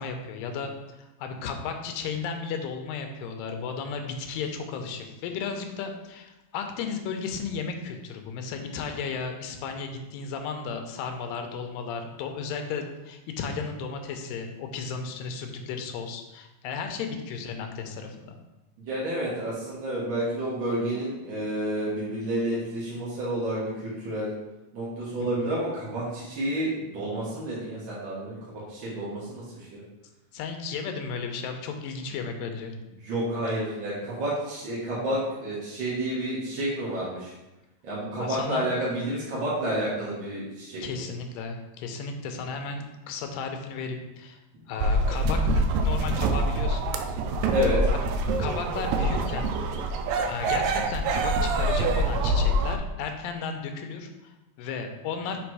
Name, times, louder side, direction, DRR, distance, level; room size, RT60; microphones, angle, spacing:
voice 1, 0.0-18.4 25.2-25.5 30.3-32.8 38.2-38.7 40.8-44.4 44.7-46.9 48.4-49.5 50.3-55.4, left 5 dB, 85° left, 5 dB, 2.4 m, -34 dB
voice 2, 18.9-24.3 24.7-29.4 29.7-29.8 33.0-37.3 37.8-41.1 47.5-47.8, right 1 dB, 50° right, -8 dB, 1.5 m, -30 dB
sound 1, 44.8-52.8, right 1 dB, 80° right, 2.1 m, -25 dB
6.2 x 3.4 x 4.6 m, 1.0 s
omnidirectional pair, 3.9 m